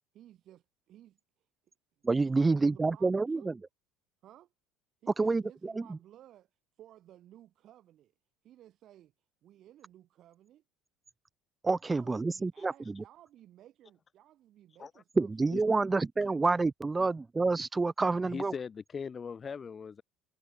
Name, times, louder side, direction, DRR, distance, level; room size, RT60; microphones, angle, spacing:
voice 1, 0.1-1.2 2.3-3.6 4.2-4.5 5.0-6.5 6.8-8.1 8.4-9.1 9.4-10.6 11.8-15.3, right 12 dB, 55° right, 4.3 m, -56 dB
voice 2, 2.0-3.5 5.2-6.0 11.6-13.0 15.2-18.5, right 3 dB, 20° right, 0.5 m, -28 dB
voice 3, 12.6-12.9 14.7-14.9 15.5-15.6 18.3-20.0, left 6 dB, 35° left, 0.7 m, -40 dB
hypercardioid pair, 80°, 0 cm